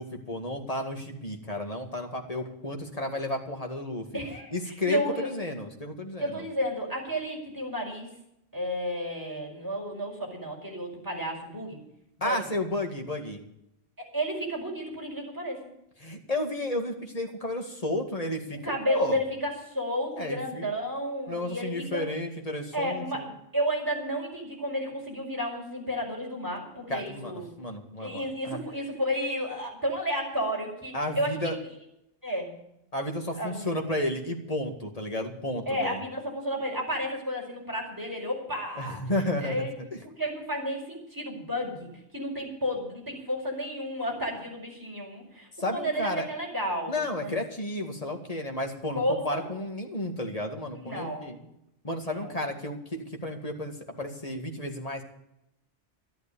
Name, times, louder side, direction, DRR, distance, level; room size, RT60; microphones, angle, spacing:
voice 1, 0.0-4.1 4.5-6.4 12.2-13.4 16.0-19.2 20.2-20.7 21.3-23.3 26.9-27.3 27.6-28.6 30.9-31.6 32.9-36.0 38.8-39.6 45.6-46.3 46.9-51.4 51.8-55.0, left 1 dB, 35° left, 2 dB, 2.2 m, -32 dB
voice 2, 4.1-5.3 6.2-8.1 8.5-11.8 12.2-12.4 14.0-15.6 18.5-22.0 22.7-23.3 23.5-27.5 28.0-31.4 32.2-32.6 33.4-33.7 35.7-39.0 39.4-39.9 40.2-47.4 48.9-49.5 50.7-51.4 52.0-52.4, equal, 15° right, -1 dB, 5.2 m, -32 dB
12.5 x 12.0 x 7.0 m, 0.81 s
omnidirectional pair, 1.1 m